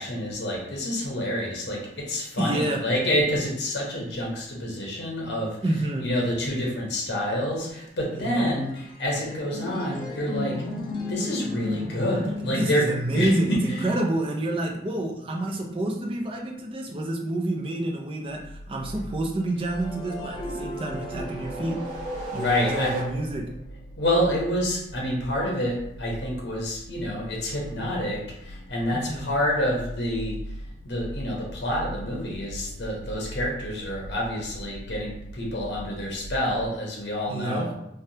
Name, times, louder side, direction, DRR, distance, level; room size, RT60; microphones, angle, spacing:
voice 1, 0.0-10.6 11.1-14.0 22.3-23.0 24.0-30.4 30.8-37.7, equal, 75° left, -3 dB, 0.9 m, -28 dB
voice 2, 2.4-2.8 5.6-6.1 8.1-8.5 12.5-22.0 22.3-23.5 28.9-29.3 37.3-37.7, right 1 dB, 30° right, 0 dB, 0.4 m, -28 dB
sound 1, 8.7-16.3 19.5-23.6, left 2 dB, 25° left, 0.5 m, -36 dB
sound 2, 18.3-36.7, equal, 90° left, 0.3 m, -41 dB
sound 3, 20.5-23.6, right 1 dB, 50° right, 0.9 m, -35 dB
3.3 x 2.2 x 2.7 m, 0.78 s
head